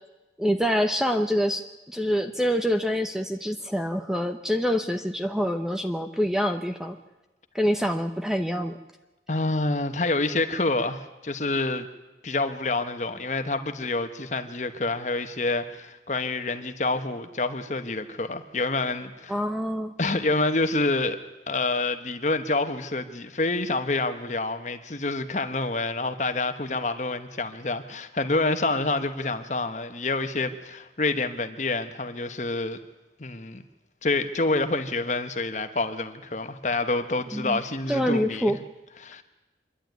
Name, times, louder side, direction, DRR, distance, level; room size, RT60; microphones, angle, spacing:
voice 1, 0.4-7.0 7.5-8.8 19.3-19.9 37.3-37.6 37.9-38.6, equal, 5° right, 7 dB, 0.7 m, -26 dB
voice 2, 9.3-11.9 12.2-19.4 20.0-21.2 21.5-32.8 33.2-33.6 34.0-38.6 39.0-39.2, left 2 dB, 40° left, 8 dB, 1.1 m, -27 dB
26.0 x 11.5 x 9.3 m, 1.1 s
head